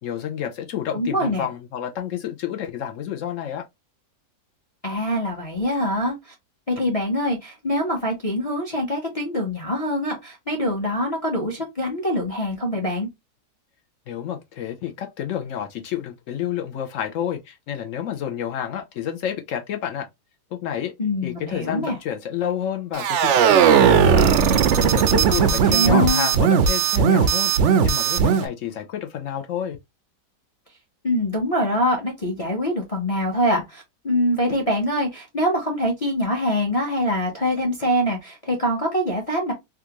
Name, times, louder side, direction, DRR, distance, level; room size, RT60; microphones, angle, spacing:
voice 1, 0.0-3.6 14.1-20.1 20.5-20.9 21.2-24.3 24.7-29.8, left 9 dB, 65° left, 0.8 m, -29 dB
voice 2, 0.9-1.5 4.8-6.3 6.7-13.1 21.0-22.0 25.3-26.3 31.0-39.5, equal, 35° left, 0.6 m, -24 dB
sound 1, 22.9-28.5, right 7 dB, 75° right, 0.6 m, -17 dB
3.6 x 2.4 x 2.8 m
omnidirectional pair, 1.8 m